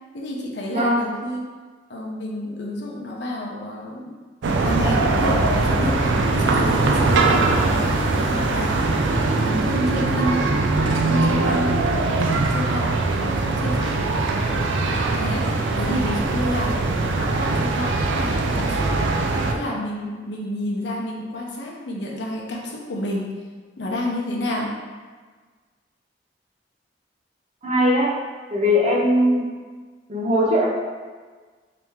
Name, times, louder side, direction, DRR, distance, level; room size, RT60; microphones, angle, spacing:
voice 1, 0.1-1.5 1.9-4.1 4.6-10.5 10.8-11.7 12.0-12.9 13.2-14.0 15.1-19.1 19.4-23.3 23.8-24.7, left 1 dB, 75° left, -2 dB, 0.6 m, -29 dB
voice 2, 0.7-1.1 27.6-28.1 28.5-29.4 30.1-30.7, equal, 35° right, -3 dB, 0.7 m, -19 dB
sound 1, 4.4-19.5, right 3 dB, 85° right, 0.4 m, -21 dB
3.0 x 2.8 x 3.5 m, 1.5 s
head